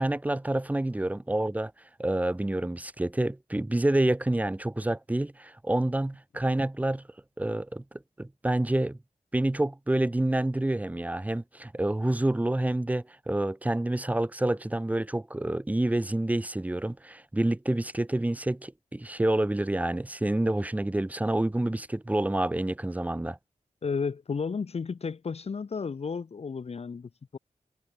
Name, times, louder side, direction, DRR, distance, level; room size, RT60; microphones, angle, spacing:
voice 1, 0.0-1.7 2.0-7.0 7.4-7.8 8.2-9.0 9.3-23.4, right 1 dB, 10° right, 0.7 m, -28 dB
voice 2, 23.8-27.4, left 5 dB, 50° left, 1.5 m, -33 dB
wide cardioid pair, 135°, 13 cm